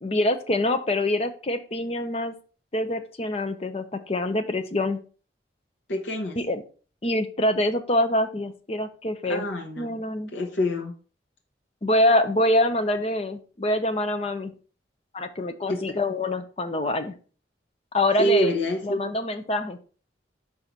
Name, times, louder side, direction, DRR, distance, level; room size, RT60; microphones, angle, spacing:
voice 1, 0.0-2.3 2.7-5.0 6.4-6.6 7.0-9.5 9.8-10.3 11.8-14.5 15.1-17.2 17.9-18.5 18.8-19.8, left 1 dB, 35° left, 8 dB, 0.6 m, -25 dB
voice 2, 5.9-6.4 9.2-10.0 10.3-10.9 15.7-16.0 18.2-19.1, equal, 75° left, 1 dB, 1.1 m, -26 dB
5.6 x 4.1 x 4.5 m, 0.38 s
head